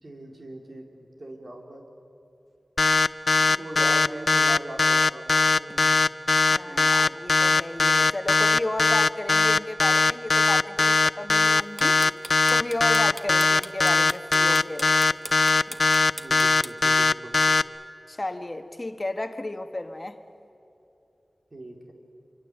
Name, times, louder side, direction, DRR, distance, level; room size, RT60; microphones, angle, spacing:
voice 1, 0.0-1.8 3.6-5.9 6.7-7.1 16.1-17.3 21.5-21.9, right 1 dB, 60° right, 1 dB, 4.1 m, -40 dB
sound 1, 2.8-17.6, left 3 dB, 65° left, 0.5 m, -20 dB
voice 2, 3.4-3.9 6.5-12.0 12.5-14.9 15.7-15.8 18.1-20.2, left 2 dB, 35° left, 7 dB, 1.4 m, -33 dB
sound 2, 11.6-16.7, equal, 5° right, 1.3 m, -38 dB
26.5 x 25.0 x 8.1 m, 2.8 s
cardioid pair, 40°, 0 cm